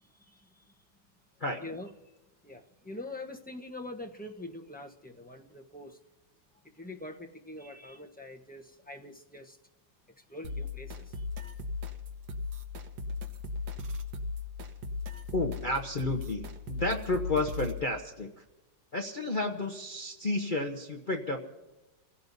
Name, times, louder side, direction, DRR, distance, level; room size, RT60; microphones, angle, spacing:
voice 1, 0.3-0.6 1.6-1.9 2.4-6.0 6.7-9.6 10.2-11.2, left 2 dB, 10° left, 2 dB, 0.6 m, -44 dB
sound 1, 10.4-17.8, left 4 dB, 70° right, 1.7 m, -37 dB
voice 2, 15.3-18.4 18.9-21.4, left 2 dB, 35° left, 2 dB, 0.8 m, -31 dB
27.5 x 16.5 x 2.7 m, 1.1 s
omnidirectional pair, 1.9 m